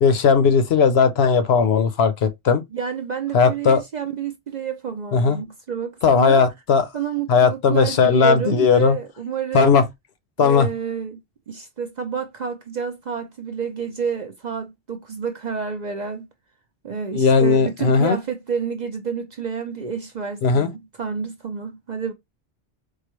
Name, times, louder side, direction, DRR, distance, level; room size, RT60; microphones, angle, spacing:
voice 1, 0.0-2.6 3.3-3.8 5.1-5.4 6.0-6.9 7.3-9.0 9.5-9.8 10.4-10.7 17.1-18.2 20.4-20.7, left 5 dB, 70° left, 0.8 m, -17 dB
voice 2, 2.7-6.4 6.9-9.7 10.4-11.2 11.5-16.3 16.8-22.1, right 6 dB, 50° right, 0.6 m, -29 dB
4.6 x 2.2 x 3.0 m
omnidirectional pair, 1.2 m